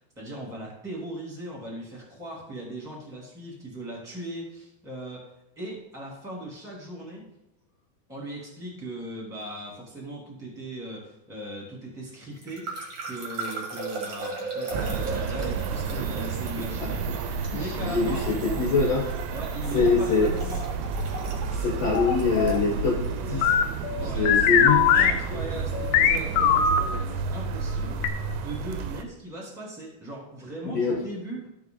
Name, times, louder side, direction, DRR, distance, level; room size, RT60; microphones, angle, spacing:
voice 1, 0.1-5.3 5.5-7.2 8.1-12.6 13.0-17.0 17.5-18.2 19.3-20.8 24.0-28.0 28.4-31.5, right 1 dB, ahead, -3 dB, 1.7 m, -38 dB
sound 1, 12.4-23.2, right 3 dB, 50° right, 1.4 m, -38 dB
sound 2, 14.7-29.0, right 5 dB, 90° right, 2.9 m, -31 dB
voice 2, 17.5-19.1 19.7-20.3 21.5-23.5 24.0-25.0 30.6-31.0, left 4 dB, 60° left, -2 dB, 1.7 m, -24 dB
sound 3, 21.9-22.6 23.4-26.8 28.0-28.1, left 8 dB, 85° left, 2.4 m, -21 dB
14.0 x 4.7 x 3.9 m, 0.85 s
omnidirectional pair, 5.2 m